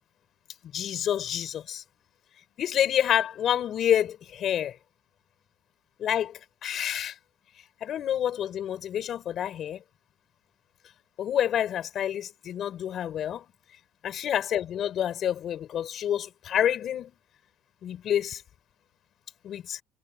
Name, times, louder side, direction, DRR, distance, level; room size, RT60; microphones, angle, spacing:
voice 1, 0.6-1.8 2.6-4.8 6.0-7.2 7.8-9.8 11.2-13.5 14.0-17.2 17.8-18.4 19.4-19.8, left 10 dB, 45° left, 6.1 m, -28 dB
cardioid pair, 140°, 0 cm